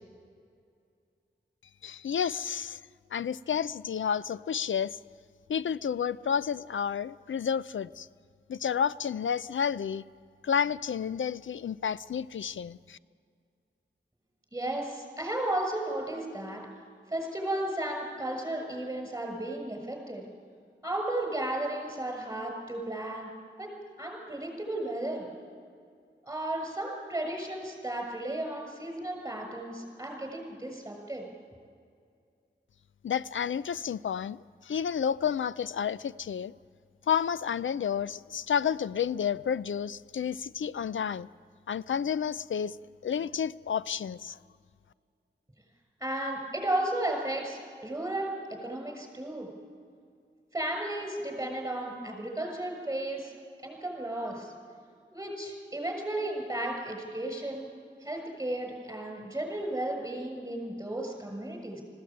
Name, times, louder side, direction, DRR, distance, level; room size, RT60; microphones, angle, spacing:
voice 1, 1.8-2.8 3.1-5.0 5.5-8.1 8.5-10.0 10.4-13.0 33.0-36.5 37.1-41.3 41.7-42.8 43.0-44.4, left 7 dB, 85° left, 17 dB, 0.4 m, -30 dB
voice 2, 14.5-16.6 17.1-20.2 20.8-23.3 23.6-23.7 24.0-25.3 26.2-31.2 46.0-48.3 48.6-49.5 50.5-53.3 53.6-54.5 55.1-57.7 58.0-61.8, right 1 dB, 15° right, 2 dB, 6.7 m, -34 dB
20.5 x 16.0 x 8.8 m, 2.2 s
wide cardioid pair, 70°, 20 cm